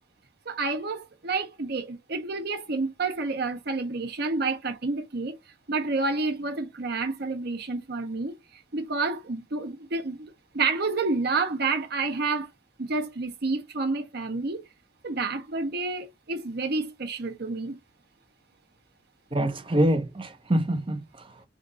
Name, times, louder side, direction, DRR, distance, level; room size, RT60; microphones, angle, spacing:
voice 1, 0.5-5.4 5.7-8.3 8.7-10.3 10.5-12.5 12.8-14.6 15.0-17.8, right 3 dB, 60° right, 0.8 m, -29 dB
voice 2, 19.3-21.4, right 1 dB, 30° right, 0.7 m, -25 dB
3.6 x 2.6 x 3.8 m
head